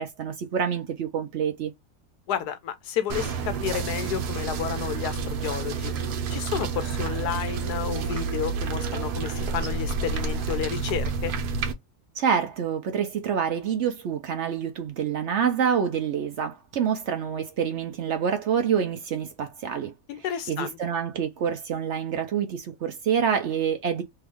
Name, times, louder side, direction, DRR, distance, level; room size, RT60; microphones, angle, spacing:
voice 1, 0.0-1.7 12.2-19.9 20.5-24.0, right 7 dB, 60° right, 0.8 m, -27 dB
voice 2, 2.3-5.9 6.3-11.3 20.1-20.8, left 9 dB, 80° left, 1.2 m, -31 dB
sound 1, 3.1-11.7, right 5 dB, 85° right, 1.3 m, -29 dB
3.5 x 2.3 x 3.4 m
omnidirectional pair, 1.7 m